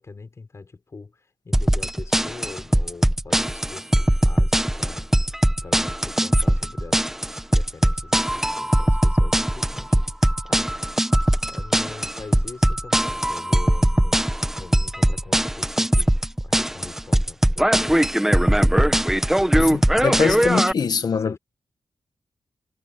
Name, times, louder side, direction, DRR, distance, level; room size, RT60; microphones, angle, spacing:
voice 1, 0.0-5.1 5.6-10.8 11.4-19.1 21.1-21.4, left 4 dB, 40° left, 5.6 m, -42 dB
sound 1, 1.5-20.7, right 1 dB, 5° right, 1.3 m, -20 dB
voice 2, 19.5-21.4, left 6 dB, 60° left, 1.4 m, -23 dB
wide cardioid pair, 120°, 8 cm